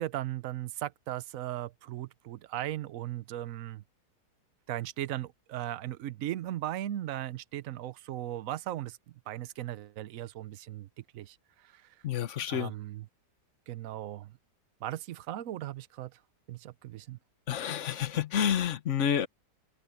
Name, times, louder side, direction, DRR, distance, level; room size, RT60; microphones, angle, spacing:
voice 1, 0.0-3.8 4.7-11.9 12.5-13.1 13.7-14.4 14.8-16.2 16.5-17.2, right 13 dB, 60° right, 1.0 m, -37 dB
voice 2, 12.0-12.7 17.5-19.3, left 9 dB, 50° left, 1.3 m, -29 dB
omnidirectional pair, 1.8 m